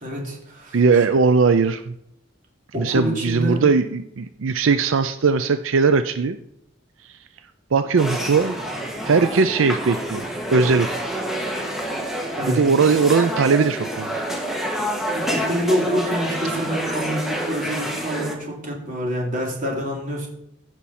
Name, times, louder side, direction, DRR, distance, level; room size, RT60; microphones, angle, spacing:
voice 1, 0.0-0.8 2.7-3.6 12.4-12.6 15.1-20.3, equal, 45° right, -2 dB, 3.1 m, -26 dB
voice 2, 0.7-1.9 2.8-6.4 7.0-7.2 7.7-8.6 9.0-10.9 12.5-14.1, right 4 dB, 90° right, 10 dB, 0.5 m, -19 dB
sound 1, 8.0-18.4, right 1 dB, ahead, 1.6 m, -28 dB
15.5 x 6.0 x 4.3 m, 0.77 s
head